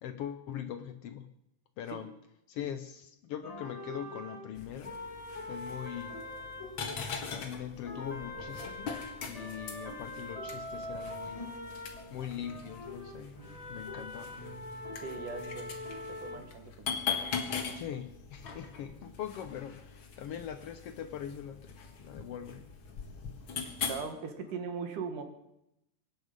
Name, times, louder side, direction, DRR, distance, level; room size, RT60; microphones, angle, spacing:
voice 1, 0.0-1.3 1.8-2.1 2.5-5.0 5.5-6.2 7.4-11.5 12.1-13.4 13.7-14.4 17.7-22.7, left 9 dB, 75° left, 9 dB, 1.4 m, -41 dB
sound 1, 3.4-7.5 7.8-16.4, left 1 dB, 20° left, 1.0 m, -43 dB
sound 2, 4.6-24.0, left 6 dB, 45° left, 2.1 m, -41 dB
voice 2, 15.0-15.8 16.1-17.0 23.9-25.2, right 5 dB, 80° right, 6 dB, 3.2 m, -40 dB
24.0 x 10.0 x 5.3 m, 0.83 s
omnidirectional pair, 3.6 m